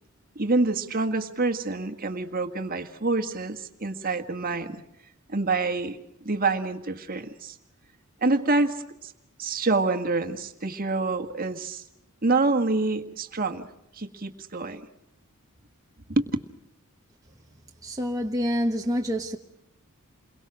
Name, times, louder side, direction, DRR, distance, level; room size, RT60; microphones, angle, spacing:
voice 1, 0.3-4.8 5.3-6.0 6.2-7.6 8.2-9.1 9.4-11.8 12.2-13.7 13.9-14.8 16.1-16.3, right 3 dB, 40° right, 1.7 m, -27 dB
voice 2, 17.8-19.4, equal, 15° right, 1.2 m, -27 dB
29.5 x 22.5 x 6.2 m
head